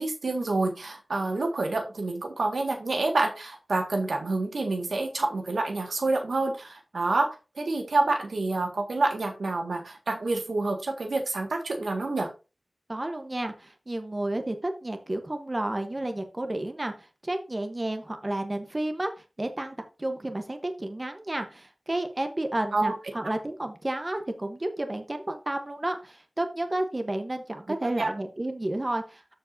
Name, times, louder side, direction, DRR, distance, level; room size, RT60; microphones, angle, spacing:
voice 1, 0.0-12.3 22.7-22.9 27.8-28.1, right 2 dB, 90° right, 3 dB, 1.7 m, -28 dB
voice 2, 12.9-19.1 19.4-29.3, right 1 dB, 30° right, 6 dB, 1.0 m, -31 dB
13.0 x 4.7 x 2.6 m, 0.30 s
wide cardioid pair, 65°, 0 cm